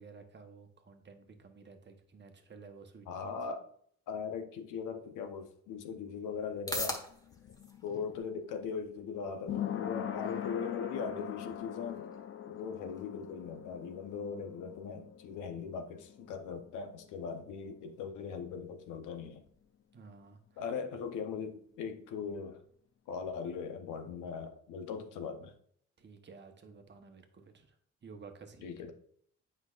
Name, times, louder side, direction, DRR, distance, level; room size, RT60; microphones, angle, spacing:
voice 1, 0.0-3.3 19.9-20.6 26.0-27.8 28.0-28.9, right 4 dB, 35° right, 1.0 m, -53 dB
voice 2, 3.1-3.7 4.1-7.0 7.8-12.1 12.4-19.4 20.6-22.6 23.1-25.5 28.6-28.9, left 6 dB, 90° left, 0.8 m, -39 dB
sound 1, 5.2-22.2, left 1 dB, 10° left, 1.3 m, -49 dB
sound 2, 6.5-17.9 18.2-18.3, left 10 dB, 45° left, 0.6 m, -43 dB
8.0 x 5.6 x 2.4 m
cardioid pair, 90°, 30 cm